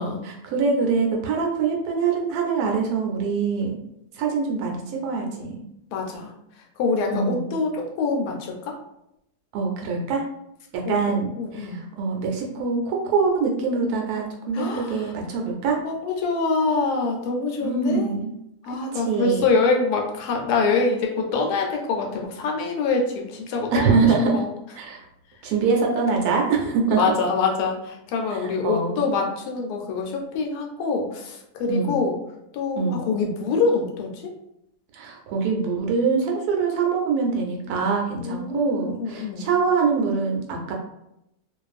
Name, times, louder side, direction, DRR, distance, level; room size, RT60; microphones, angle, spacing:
voice 1, 0.2-3.8 4.1-5.7 7.1-7.5 9.5-10.2 10.9-15.8 17.6-18.3 18.9-19.4 23.7-24.4 24.8-25.0 25.4-27.2 28.6-29.0 31.7-32.0 32.7-33.1 34.9-40.7, right 4 dB, 75° right, 0 dB, 1.0 m, -24 dB
voice 2, 5.9-6.3 6.8-8.8 10.9-11.0 11.4-11.8 14.5-15.1 15.8-18.2 18.6-24.0 24.3-24.5 26.9-32.2 32.5-34.3 38.2-39.5, left 4 dB, 80° left, 1 dB, 1.1 m, -25 dB
2.5 x 2.3 x 2.4 m, 0.81 s
omnidirectional pair, 1.7 m